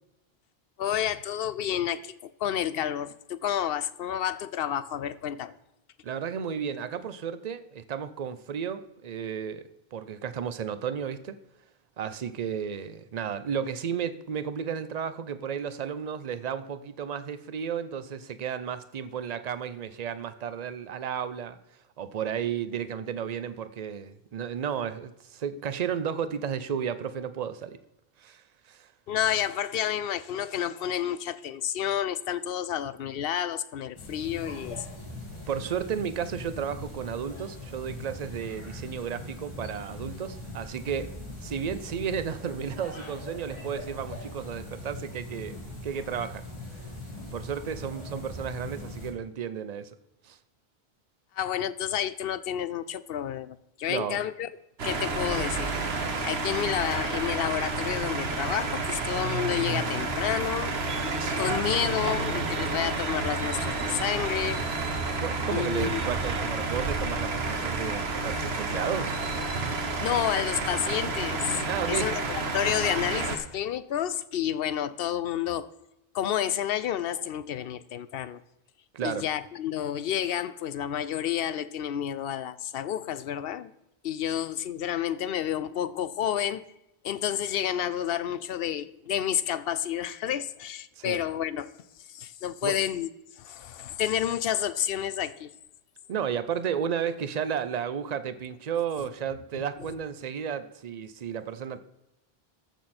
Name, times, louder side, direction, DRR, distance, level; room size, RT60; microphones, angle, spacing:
voice 1, 0.8-5.6 29.1-34.9 51.3-54.5 54.8-55.7 56.2-60.7 61.4-64.7 65.5-66.0 70.0-72.2 72.5-75.7 76.1-78.4 79.0-83.7 84.0-86.6 87.0-91.7 92.1-93.1 93.4-95.5 99.5-99.6, left 10 dB, 70° left, 0.8 m, -30 dB
voice 2, 6.0-11.4 12.0-21.6 22.0-27.8 28.2-28.9 35.5-41.1 41.4-45.6 45.8-46.4 46.7-46.9 47.3-49.9 50.2-50.4 53.9-54.2 65.2-69.2 71.7-72.1 78.9-79.3 91.0-91.2 92.6-92.8 96.1-101.8, right 8 dB, 45° right, 0.7 m, -33 dB
sound 1, 34.0-49.1, left 1 dB, 30° left, 2.6 m, -41 dB
sound 2, 54.8-73.4, right 3 dB, 85° right, 1.4 m, -30 dB
14.0 x 6.5 x 4.3 m
omnidirectional pair, 1.0 m